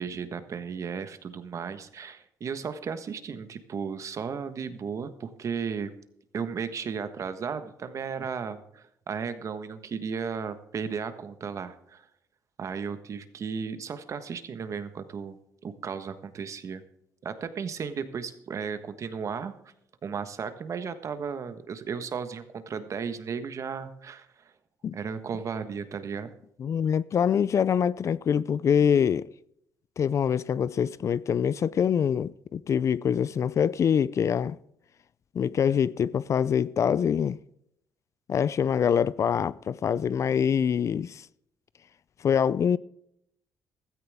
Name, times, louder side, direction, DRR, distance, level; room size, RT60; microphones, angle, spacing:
voice 1, 0.0-5.9 6.3-12.1 12.6-15.4 15.6-16.8 17.2-19.5 20.0-24.4 24.9-26.3, right 6 dB, 50° right, 1.4 m, -35 dB
voice 2, 26.6-29.3 30.0-34.6 35.3-37.4 38.3-41.3 42.2-42.8, left 8 dB, 45° left, 0.4 m, -25 dB
15.5 x 14.0 x 3.6 m
cardioid pair, 105°, 7 cm